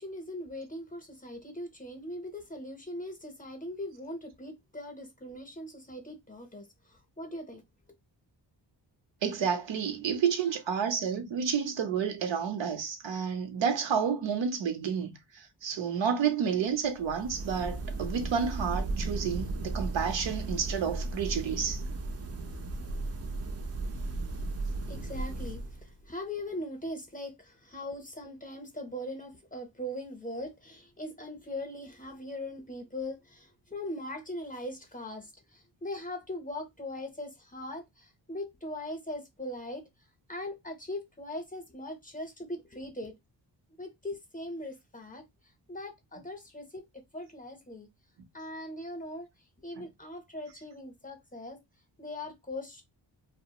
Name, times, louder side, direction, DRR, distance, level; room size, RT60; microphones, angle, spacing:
voice 1, 0.0-7.6 24.8-39.8 40.3-43.2 43.8-45.2 45.7-47.9 48.3-49.3 49.6-51.6 52.0-52.8, left 1 dB, 20° left, 0.7 m, -40 dB
voice 2, 9.2-21.8, right 7 dB, 80° right, 0.7 m, -30 dB
sound 1, 16.9-26.1, right 2 dB, 35° right, 0.4 m, -35 dB
2.3 x 2.0 x 2.8 m
wide cardioid pair, 95°, 44 cm